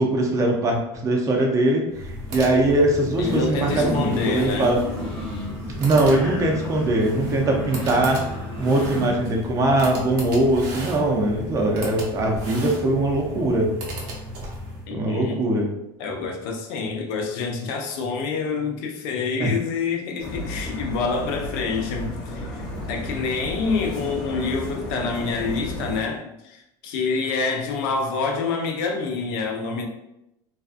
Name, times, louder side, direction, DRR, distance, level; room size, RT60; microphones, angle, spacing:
voice 1, 0.0-4.8 5.8-8.3 8.6-13.7 14.9-15.7 19.4-19.5, right 2 dB, 25° right, 0 dB, 0.5 m, -21 dB
sound 1, 1.9-14.9, equal, 75° right, 0.8 m, -34 dB
voice 2, 3.2-4.8 14.9-15.4 16.0-22.5 22.9-29.9, left 4 dB, 75° left, 2 dB, 0.5 m, -27 dB
sound 2, 3.6-9.1, equal, 5° left, 0.7 m, -32 dB
sound 3, 20.2-26.0, left 1 dB, 40° left, 0.8 m, -33 dB
2.5 x 2.3 x 2.4 m, 0.87 s
cardioid pair, 140°, 12 cm